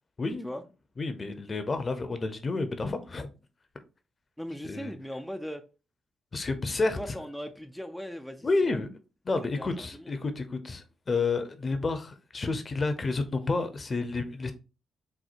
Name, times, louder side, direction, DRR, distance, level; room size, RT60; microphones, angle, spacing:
voice 1, 1.0-3.3 4.6-4.9 6.3-7.0 8.4-8.9 9.3-14.5, left 3 dB, 40° left, 0.7 m, -30 dB
voice 2, 4.4-5.6 7.0-8.8 9.4-10.2, equal, ahead, 0.4 m, -39 dB
4.2 x 2.2 x 2.6 m
supercardioid pair, 55°, 0 cm